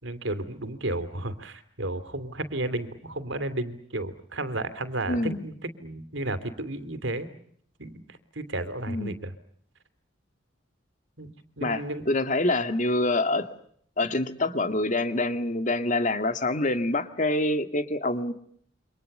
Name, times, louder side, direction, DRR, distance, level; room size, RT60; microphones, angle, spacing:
voice 1, 0.0-7.3 7.8-9.3 11.2-12.1, right 1 dB, 70° right, 12 dB, 3.1 m, -33 dB
voice 2, 5.1-5.4 8.9-9.1 11.6-13.5 14.0-18.3, left 2 dB, 40° left, 9 dB, 2.2 m, -26 dB
29.0 x 25.5 x 6.8 m, 0.64 s
head